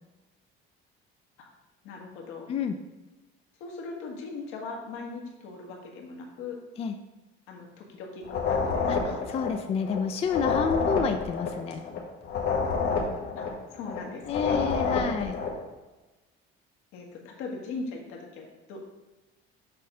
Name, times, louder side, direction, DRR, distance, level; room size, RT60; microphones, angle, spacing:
voice 1, 1.8-2.5 3.6-6.6 7.5-9.2 13.4-13.5 13.7-14.6 16.9-18.9, left 4 dB, 85° left, 1 dB, 1.5 m, -39 dB
sound 1, 8.2-15.6, left 5 dB, 50° left, 1.2 m, -28 dB
voice 2, 9.3-11.8 14.3-15.4, left 6 dB, 30° left, 7 dB, 0.4 m, -29 dB
6.6 x 3.7 x 5.4 m, 1.1 s
cardioid pair, 150°, 21 cm